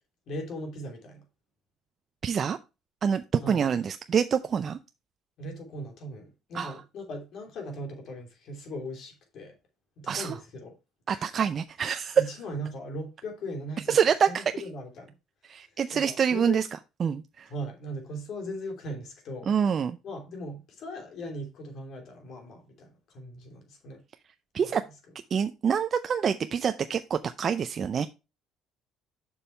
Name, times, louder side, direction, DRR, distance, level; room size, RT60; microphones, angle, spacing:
voice 1, 0.3-1.2 3.4-3.9 5.4-9.6 10.0-10.8 11.1-11.3 11.8-14.0 14.3-15.1 15.9-16.6 17.5-19.5 20.0-24.0 24.6-24.8, equal, 60° left, 2.9 m, -39 dB
voice 2, 2.2-2.6 3.0-4.8 6.5-6.7 10.1-10.4 11.1-12.2 13.9-14.4 15.5-16.6 17.0-17.5 19.5-20.0 24.5-24.8 25.3-28.1, right 7 dB, 40° right, 0.5 m, -26 dB
6.8 x 5.6 x 4.4 m
cardioid pair, 105°, 0 cm